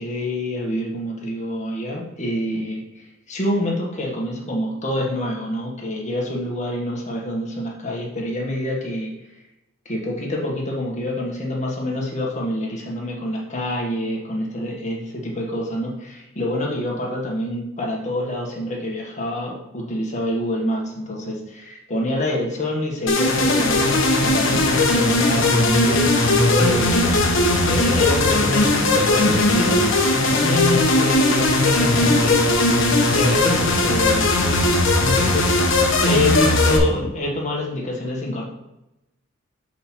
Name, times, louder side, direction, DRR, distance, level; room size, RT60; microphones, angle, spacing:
voice 1, 0.0-9.1 9.8-29.9 30.3-32.4 33.1-34.7 35.0-35.5 36.0-38.4, left 1 dB, 35° left, -2 dB, 1.6 m, -26 dB
sound 1, 23.1-36.8, left 2 dB, 65° left, 1.1 m, -18 dB
5.4 x 4.3 x 6.0 m, 0.91 s
head